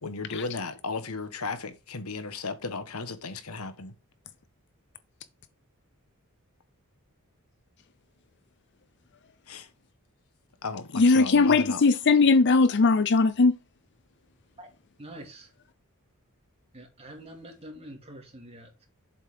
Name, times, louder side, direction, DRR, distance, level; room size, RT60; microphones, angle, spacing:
voice 1, 0.0-3.9 9.5-9.7 10.6-11.8, left 3 dB, 75° left, 1.3 m, -35 dB
voice 2, 10.9-13.5, left 4 dB, 50° left, 0.6 m, -20 dB
voice 3, 15.0-15.5 16.7-18.9, right 1 dB, 25° right, 2.6 m, -45 dB
7.5 x 5.4 x 5.1 m
head